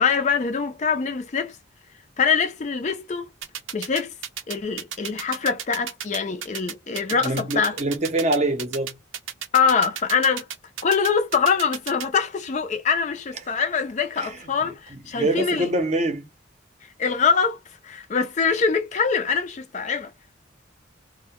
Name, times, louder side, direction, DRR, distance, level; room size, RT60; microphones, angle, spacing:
voice 1, 0.0-1.6 2.2-3.3 3.7-4.1 4.5-7.7 9.5-10.5 10.8-15.7 17.0-17.6 17.8-20.1, left 5 dB, 35° left, 0.4 m, -23 dB
sound 1, 3.4-12.1, right 9 dB, 85° right, 0.5 m, -32 dB
voice 2, 7.2-9.0 14.2-16.3, right 1 dB, 35° right, 0.6 m, -25 dB
2.1 x 2.1 x 2.8 m
head